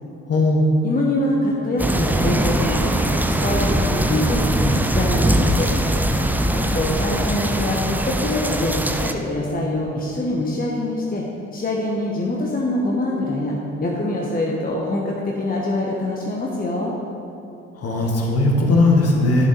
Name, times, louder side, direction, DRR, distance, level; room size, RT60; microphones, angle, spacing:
voice 1, 0.3-0.7 17.8-19.5, left 2 dB, 40° left, 0 dB, 1.6 m, -18 dB
voice 2, 0.8-2.9 3.4-5.7 6.7-11.2 11.5-16.9, left 1 dB, 25° left, -2 dB, 1.1 m, -24 dB
sound 1, 1.8-9.1, right 1 dB, 5° right, 0.5 m, -21 dB
10.5 x 5.9 x 4.0 m, 2.6 s
figure-of-eight pair, 40°, 36 cm